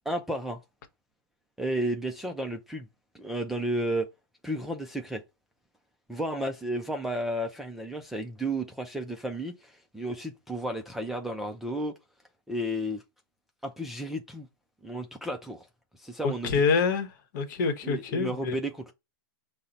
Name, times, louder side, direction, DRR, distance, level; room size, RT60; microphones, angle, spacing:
voice 1, 0.1-0.6 1.6-2.9 3.1-4.1 4.4-5.2 6.1-11.9 12.5-13.0 13.6-14.5 14.8-15.7 16.0-16.6 17.8-18.9, right 1 dB, ahead, 0.3 m, -32 dB
voice 2, 16.2-18.6, left 5 dB, 50° left, 0.9 m, -27 dB
5.5 x 2.0 x 3.9 m
hypercardioid pair, 150°, 13 cm